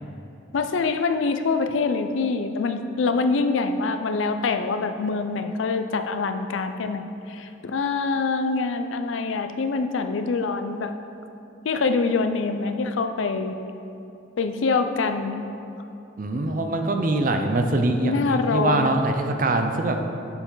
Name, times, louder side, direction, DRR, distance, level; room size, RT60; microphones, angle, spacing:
voice 1, 0.5-10.9 11.6-13.6 14.4-15.5 18.0-18.9, left 4 dB, 85° left, 8 dB, 0.4 m, -25 dB
voice 2, 16.2-20.0, right 2 dB, 45° right, 5 dB, 0.5 m, -23 dB
6.9 x 6.8 x 3.8 m, 2.8 s
head